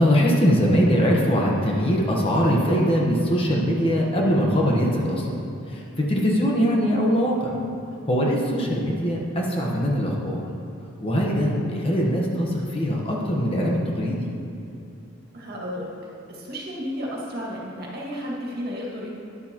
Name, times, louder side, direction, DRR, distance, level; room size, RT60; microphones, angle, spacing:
voice 1, 0.0-5.4 5.7-7.5 8.1-10.5 11.0-14.3, equal, 25° left, -2 dB, 1.1 m, -22 dB
voice 2, 15.3-15.9 16.3-19.1, equal, 45° right, -4 dB, 2.0 m, -32 dB
12.5 x 10.5 x 3.0 m, 2.6 s
head